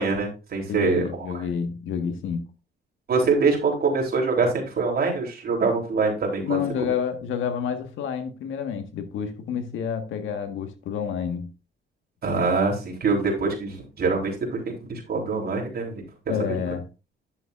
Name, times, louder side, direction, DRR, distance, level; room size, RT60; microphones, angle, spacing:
voice 1, 0.0-1.3 3.1-6.6 12.2-16.0, right 4 dB, 50° right, 3.6 m, -24 dB
voice 2, 0.7-2.5 6.4-11.5 16.3-16.8, left 7 dB, 80° left, 1.6 m, -29 dB
10.5 x 7.1 x 2.6 m
cardioid pair, 90°, 20 cm